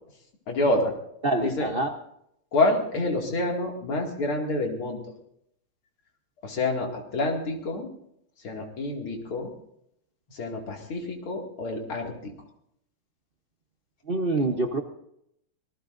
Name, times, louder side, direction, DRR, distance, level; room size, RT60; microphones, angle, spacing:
voice 1, 0.5-0.9 1.4-1.7 2.5-5.0 6.4-7.9 8.4-9.5 10.3-12.1, left 2 dB, 75° left, 1 dB, 3.2 m, -27 dB
voice 2, 1.2-1.9 14.1-14.8, right 2 dB, 45° right, 3 dB, 0.7 m, -25 dB
26.0 x 19.0 x 2.6 m, 0.75 s
omnidirectional pair, 2.3 m